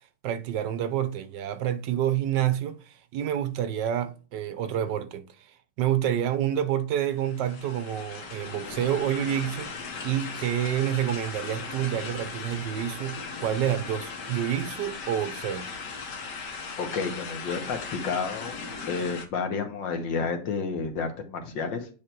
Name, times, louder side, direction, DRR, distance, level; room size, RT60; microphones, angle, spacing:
voice 1, 0.2-15.7, right 10 dB, 75° right, 1.3 m, -28 dB
sound 1, 7.2-19.3, left 4 dB, 70° left, 1.7 m, -38 dB
voice 2, 16.8-18.6 18.9-21.9, left 5 dB, 85° left, 1.9 m, -30 dB
9.3 x 3.3 x 4.4 m
omnidirectional pair, 2.0 m